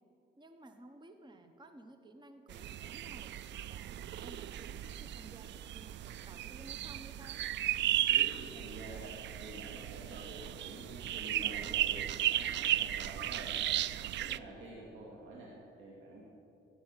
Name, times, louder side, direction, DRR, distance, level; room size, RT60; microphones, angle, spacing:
voice 1, 0.4-7.4, right 2 dB, 25° right, 7 dB, 1.1 m, -55 dB
sound 1, 2.5-14.4, right 12 dB, 65° right, 0.4 m, -35 dB
voice 2, 8.1-13.6 14.2-16.2, right 2 dB, 85° right, -4 dB, 2.3 m, -48 dB
15.5 x 7.1 x 9.0 m, 2.8 s
cardioid pair, 90°, 20 cm